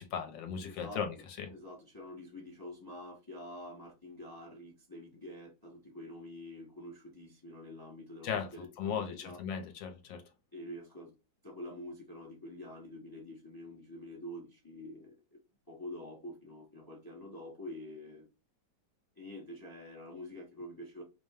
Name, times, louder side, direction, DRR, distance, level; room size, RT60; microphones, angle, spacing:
voice 1, 0.0-1.5 8.2-8.5 8.8-10.2, left 7 dB, 70° left, 1.3 m, -37 dB
voice 2, 0.6-1.0 1.5-9.4 10.5-11.1 11.4-15.1 15.7-18.3 19.2-21.0, left 1 dB, 35° left, 0.3 m, -47 dB
5.1 x 2.1 x 3.4 m
omnidirectional pair, 2.4 m